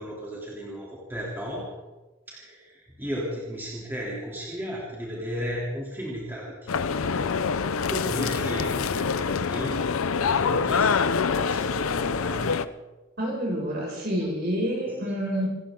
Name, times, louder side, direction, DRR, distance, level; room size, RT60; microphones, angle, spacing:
voice 1, 0.0-1.7 2.3-6.9 7.9-9.8 10.3-12.5 15.0-15.1, equal, 10° right, -5 dB, 3.2 m, -35 dB
sound 1, 6.7-12.7, left 5 dB, 90° left, 0.6 m, -25 dB
voice 2, 13.2-15.5, equal, 50° right, -2 dB, 6.3 m, -28 dB
26.5 x 14.0 x 3.8 m, 1.1 s
head